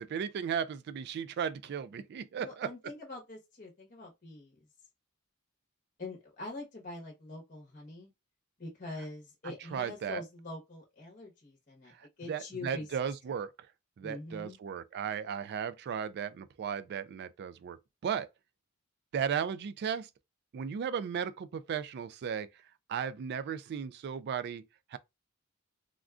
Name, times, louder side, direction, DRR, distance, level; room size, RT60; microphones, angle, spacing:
voice 1, 0.0-2.7 9.7-10.2 12.0-13.5 14.0-17.8 18.0-18.3 19.1-20.1 20.5-22.5 22.9-24.6 24.9-25.0, right 7 dB, 50° right, 0.3 m, -35 dB
voice 2, 2.4-4.6 6.0-8.1 8.6-11.9 12.2-12.9 13.3-13.4 14.0-14.6, left 2 dB, 35° left, 0.9 m, -44 dB
3.6 x 2.3 x 2.3 m
head